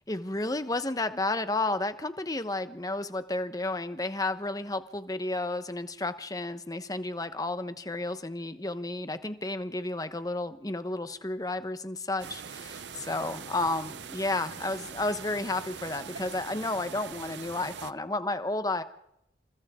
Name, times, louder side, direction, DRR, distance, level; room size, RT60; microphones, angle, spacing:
voice 1, 0.1-18.8, left 2 dB, 20° left, 11 dB, 1.1 m, -32 dB
sound 1, 12.2-17.9, right 6 dB, 85° right, 0.7 m, -42 dB
28.5 x 27.5 x 3.7 m, 0.81 s
head